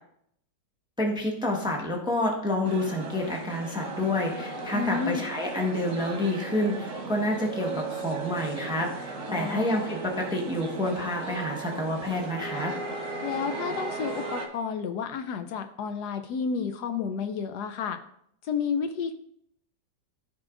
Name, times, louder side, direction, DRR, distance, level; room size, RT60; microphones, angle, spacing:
voice 1, 1.0-12.7, left 1 dB, 5° right, 0 dB, 0.8 m, -28 dB
sound 1, 2.6-14.5, right 3 dB, 65° right, 1.8 m, -36 dB
voice 2, 4.7-5.3 9.3-9.7 13.2-18.0 18.4-19.1, left 6 dB, 75° left, 8 dB, 1.1 m, -31 dB
13.5 x 4.9 x 2.5 m, 0.70 s
omnidirectional pair, 1.9 m